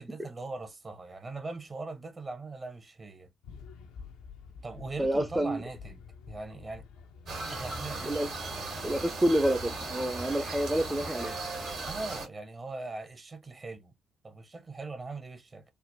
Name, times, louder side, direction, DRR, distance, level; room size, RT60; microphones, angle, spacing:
voice 1, 0.0-3.3 4.6-6.0 6.3-6.8 7.5-8.0 11.8-13.9 14.2-15.6, right 3 dB, 40° right, 0.8 m, -40 dB
sound 1, 3.4-11.7, left 6 dB, 75° left, 0.4 m, -50 dB
voice 2, 5.0-5.6 8.0-8.3 8.8-11.3, right 1 dB, 15° right, 0.5 m, -28 dB
sound 2, 7.3-12.3, right 3 dB, 70° right, 1.4 m, -37 dB
3.4 x 2.1 x 2.6 m
hypercardioid pair, 40°, 0 cm